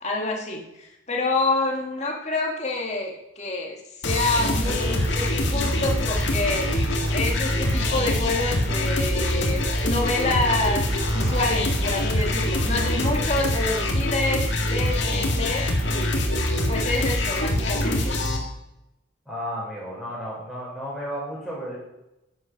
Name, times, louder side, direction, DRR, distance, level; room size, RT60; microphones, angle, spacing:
voice 1, 0.0-6.7 7.1-18.1, left 2 dB, 35° left, 0 dB, 2.0 m, -28 dB
sound 1, 4.0-18.4, left 1 dB, 60° left, 1.9 m, -24 dB
sound 2, 4.5-13.9, right 1 dB, 20° right, 0.6 m, -36 dB
voice 2, 19.3-21.8, equal, ahead, -6 dB, 5.2 m, -33 dB
11.0 x 9.7 x 5.9 m, 0.91 s
head